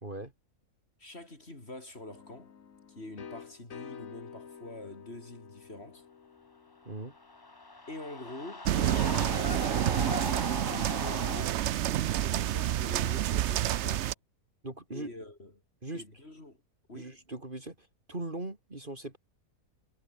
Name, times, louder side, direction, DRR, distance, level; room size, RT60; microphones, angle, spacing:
voice 1, 0.0-0.3 6.8-7.1 14.6-15.1 15.8-16.0 16.9-19.2, right 2 dB, 30° right, 3.2 m, -40 dB
voice 2, 1.0-2.5 2.9-6.1 7.9-11.6 12.0-14.1 14.9-15.5 15.9-16.6 16.9-17.1, left 2 dB, 40° left, 4.7 m, -45 dB
sound 1, 2.1-7.8, left 7 dB, 55° left, 1.8 m, -50 dB
sound 2, 7.0-11.5, left 3 dB, 15° left, 1.0 m, -39 dB
sound 3, 8.7-14.1, right 12 dB, 65° right, 0.7 m, -29 dB
omnidirectional pair, 1.7 m